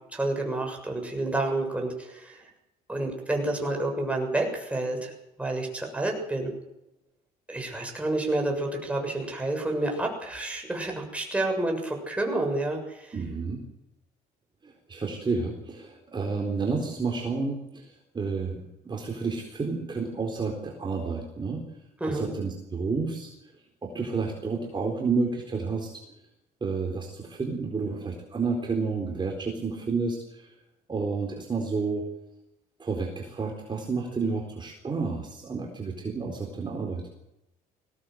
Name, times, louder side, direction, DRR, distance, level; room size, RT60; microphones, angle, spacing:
voice 1, 0.1-2.4 2.9-5.1 5.4-6.5 7.5-13.2 22.0-22.3, right 2 dB, 5° right, 2 dB, 7.0 m, -29 dB
voice 2, 13.1-13.6 14.6-21.6 22.1-23.3 23.8-26.0 26.6-30.5 30.9-32.0 32.8-37.1, right 4 dB, 25° right, 1 dB, 4.1 m, -30 dB
21.0 x 17.5 x 7.9 m, 0.89 s
cardioid pair, 110°, 17 cm